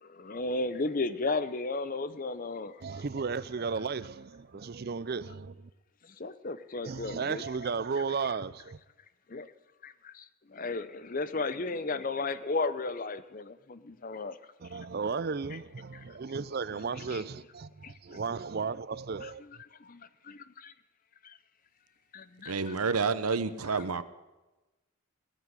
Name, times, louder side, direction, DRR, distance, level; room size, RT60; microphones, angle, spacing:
voice 1, 0.0-2.8 6.2-7.4 9.3-9.5 9.8-14.4 17.1-17.2 17.8-18.2 19.2-19.3 19.8-20.7 21.2-21.4 22.1-22.5, left 3 dB, 40° left, 0.6 m, -34 dB
voice 2, 2.8-5.6 6.8-8.8 14.6-19.4, right 5 dB, 45° right, 0.5 m, -34 dB
voice 3, 22.4-24.0, right 5 dB, 90° right, 0.9 m, -29 dB
18.0 x 7.5 x 9.7 m
head